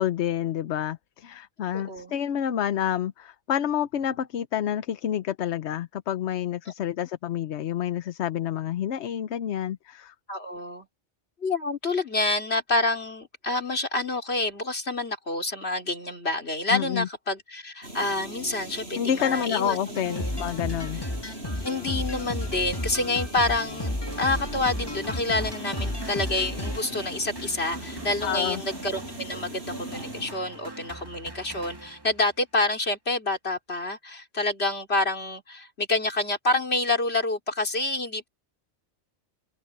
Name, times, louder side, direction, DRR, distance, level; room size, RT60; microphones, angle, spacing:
voice 1, 0.0-10.1 16.7-17.1 19.0-21.0 28.2-28.6, left 10 dB, 85° left, 1.0 m, -28 dB
voice 2, 1.7-2.1 6.7-6.8 10.3-10.9 11.4-20.4 20.9-21.0 21.6-38.3, left 2 dB, 70° left, 3.8 m, -28 dB
sound 1, 17.8-30.3, right 1 dB, 70° right, 8.0 m, -40 dB
sound 2, 19.9-26.8, left 1 dB, 20° left, 1.7 m, -33 dB
sound 3, 24.1-32.4, right 2 dB, 20° right, 2.1 m, -43 dB
omnidirectional pair, 1.1 m